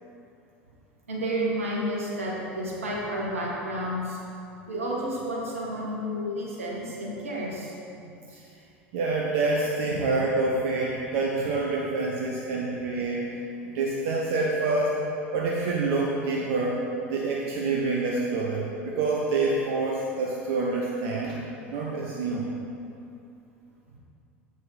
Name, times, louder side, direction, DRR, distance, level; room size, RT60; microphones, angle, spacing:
voice 1, 1.1-4.2 4.7-7.7, equal, 80° right, -4 dB, 1.7 m, -31 dB
voice 2, 8.9-13.4 13.6-15.0 15.3-16.8 17.1-21.4 21.7-22.5, right 3 dB, 60° right, -3 dB, 0.9 m, -27 dB
7.8 x 5.5 x 5.4 m, 2.6 s
figure-of-eight pair, 75°, 7 cm